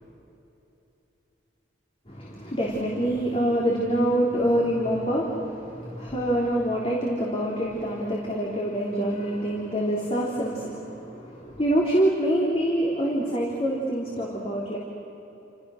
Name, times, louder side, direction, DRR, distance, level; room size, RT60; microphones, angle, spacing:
voice 1, 2.1-14.8, right 1 dB, 30° left, -3 dB, 3.4 m, -26 dB
29.5 x 28.5 x 6.5 m, 2.9 s
head